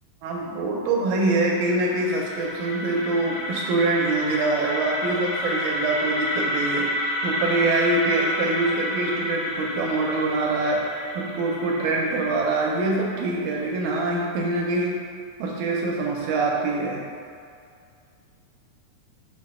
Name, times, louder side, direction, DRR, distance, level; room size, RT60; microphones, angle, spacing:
voice 1, 0.2-10.8 11.2-15.0 15.4-17.0, right 2 dB, 80° right, -2 dB, 1.8 m, -24 dB
sound 1, 1.2-13.2, left 1 dB, 70° left, 1.5 m, -30 dB
5.5 x 2.1 x 4.1 m, 2.3 s
omnidirectional pair, 3.8 m